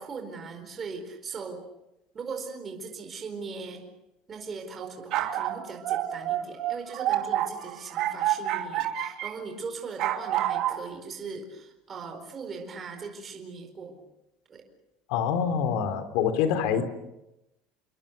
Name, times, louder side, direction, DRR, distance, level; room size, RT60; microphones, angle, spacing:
voice 1, 0.0-1.7 2.1-3.9 4.3-14.0 14.5-14.6, right 4 dB, 20° right, 4 dB, 4.5 m, -39 dB
sound 1, 4.8-9.3 10.0-10.8, right 12 dB, 50° right, 2.8 m, -28 dB
voice 2, 15.1-16.9, left 7 dB, 65° left, 9 dB, 3.4 m, -25 dB
29.5 x 22.5 x 6.8 m, 0.92 s
cardioid pair, 165°, 0 cm